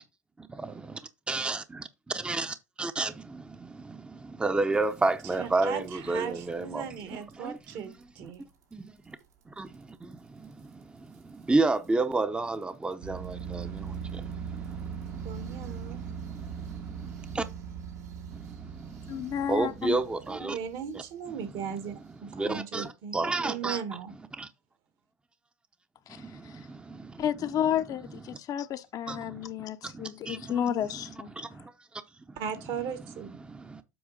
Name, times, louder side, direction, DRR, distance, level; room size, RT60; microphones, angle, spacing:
voice 1, 1.3-1.9 2.1-7.9 8.2-8.3 8.7-9.2 9.6-17.4 18.3-20.6 22.3-23.8 24.4-24.5 26.1-27.5 28.1-28.4 29.1-29.5 29.8-30.6 30.9-32.0 32.3-32.4 33.4-33.8, right 3 dB, 10° right, 0.7 m, -32 dB
sound 1, 4.7-5.9 6.2-6.4 6.8-7.0 7.3-7.4 7.6-7.7 8.3-8.4 9.2-9.3 9.7-9.8 11.1-11.2 11.8-11.9 13.0-21.3, right 7 dB, 80° right, 2.5 m, -40 dB
voice 2, 5.4-7.9 8.1-8.4 15.2-16.0 20.3-21.9 22.2-24.1 32.4-33.3, right 7 dB, 60° right, 1.6 m, -37 dB
voice 3, 19.1-20.0 26.1-26.2 27.2-31.3, left 9 dB, 45° left, 0.7 m, -31 dB
7.8 x 4.9 x 4.0 m
hypercardioid pair, 80°, 9 cm